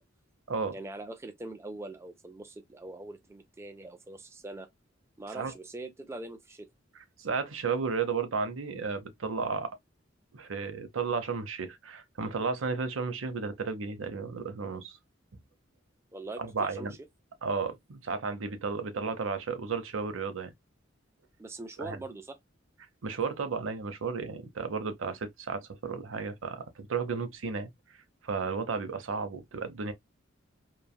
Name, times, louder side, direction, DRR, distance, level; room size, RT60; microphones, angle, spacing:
voice 1, 0.7-4.7 5.2-6.7 16.1-16.9 21.4-22.4, right 2 dB, 15° right, 0.4 m, -42 dB
voice 2, 7.2-9.7 10.3-15.0 16.4-16.9 17.4-20.5 21.8-22.0 23.0-27.7 28.2-29.9, right 5 dB, 85° right, 0.7 m, -33 dB
3.3 x 2.2 x 2.2 m
head